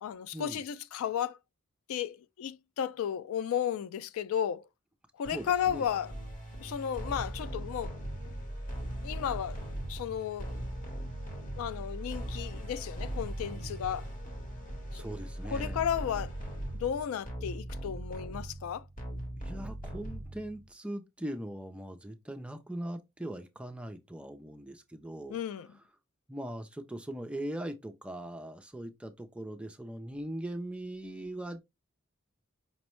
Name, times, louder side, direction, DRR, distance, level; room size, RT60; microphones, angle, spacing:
voice 1, 0.0-1.4 1.9-4.6 5.2-6.1 6.6-7.9 9.0-9.6 9.9-10.5 11.6-14.1 14.9-15.0 15.5-16.4 16.7-18.9 25.3-25.7, left 9 dB, 85° left, 0.3 m, -33 dB
sound 1, 5.2-20.7, right 1 dB, 40° left, 1.1 m, -39 dB
voice 2, 5.3-5.9 14.9-15.9 19.4-25.4 26.3-31.6, right 1 dB, 5° right, 0.3 m, -40 dB
5.3 x 2.0 x 3.0 m
head